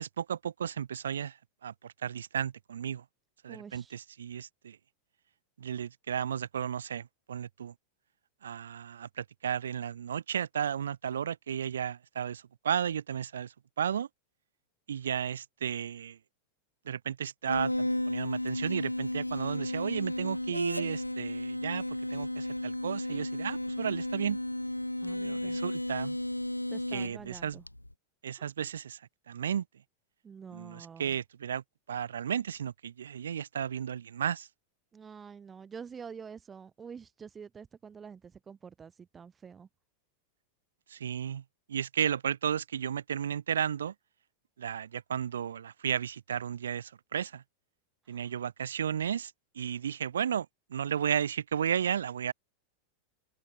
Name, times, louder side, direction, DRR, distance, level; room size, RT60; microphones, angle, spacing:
voice 1, 0.0-1.3 1.6-1.7 2.0-3.0 3.4-4.8 5.6-7.7 8.4-13.5 13.8-14.1 14.9-16.2 16.9-21.8 22.1-24.4 25.2-26.2 26.9-27.6 28.2-29.0 29.3-29.6 30.5-31.6 31.9-34.5 40.9-41.4 41.7-43.9 44.6-47.4 48.1-49.3 49.6-50.5 50.7-52.3, right 8 dB, 65° right, 0.5 m, -33 dB
voice 2, 3.5-4.0 25.0-25.6 26.7-27.6 28.3-28.5 30.2-31.2 34.9-39.7 48.1-48.3, right 6 dB, 20° right, 0.5 m, -47 dB
sound 1, 17.5-27.9, left 1 dB, 85° left, 0.5 m, -34 dB
figure-of-eight pair, 90°, 0 cm